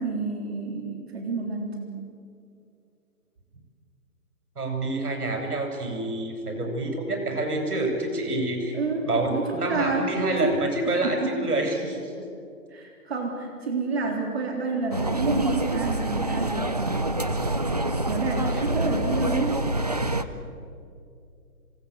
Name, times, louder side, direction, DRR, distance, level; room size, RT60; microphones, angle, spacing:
voice 1, 0.0-1.8 8.7-10.2 10.4-10.6 10.9-11.5 12.7-17.2 18.1-19.6, right 3 dB, 45° right, 1 dB, 3.7 m, -29 dB
voice 2, 4.6-8.8 9.0-12.2 18.3-18.7, right 2 dB, 80° right, 2 dB, 7.8 m, -27 dB
sound 1, 14.9-20.2, right 1 dB, 30° right, 0.5 m, -26 dB
26.5 x 19.0 x 8.3 m, 2.4 s
hypercardioid pair, 170°, 45 cm